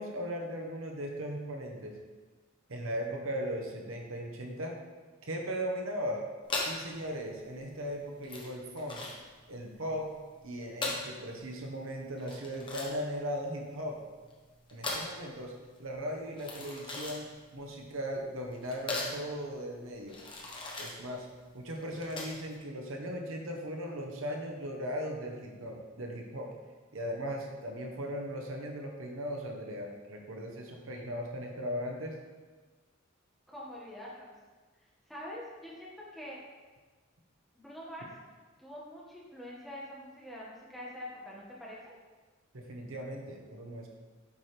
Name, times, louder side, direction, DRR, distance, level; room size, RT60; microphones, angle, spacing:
voice 1, 0.0-2.0 2.7-4.8 5.2-6.2 6.6-9.0 9.5-10.1 10.4-14.0 14.7-15.5 15.8-20.2 20.8-21.3 21.5-26.5 26.9-32.2 42.5-43.9, equal, 75° right, 1 dB, 1.0 m, -38 dB
sound 1, 6.4-22.6, left 2 dB, 25° left, 1.1 m, -40 dB
voice 2, 33.5-34.3 35.1-36.4 37.5-38.1 38.6-41.9, left 1 dB, ahead, -6 dB, 1.5 m, -45 dB
8.5 x 5.8 x 3.3 m, 1.3 s
head